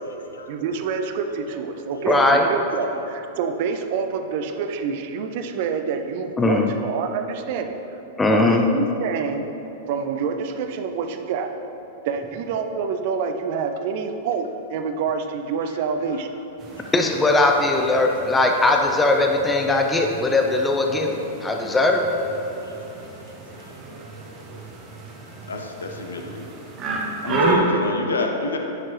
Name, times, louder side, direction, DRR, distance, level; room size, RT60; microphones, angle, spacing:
voice 1, 0.5-7.8 8.3-9.5 9.9-11.5 12.1-16.3 27.0-27.1, right 6 dB, 50° right, 6 dB, 0.5 m, -27 dB
voice 2, 2.1-2.5 6.4-6.7 8.2-8.6 16.9-22.0, left 2 dB, 10° left, 2 dB, 0.5 m, -19 dB
sound 1, 16.6-27.6, right 3 dB, 30° right, 1.0 m, -32 dB
voice 3, 25.5-26.4 27.2-28.6, left 3 dB, 75° left, 3 dB, 0.6 m, -28 dB
9.6 x 4.5 x 3.1 m, 2.9 s
figure-of-eight pair, 95°, 0 cm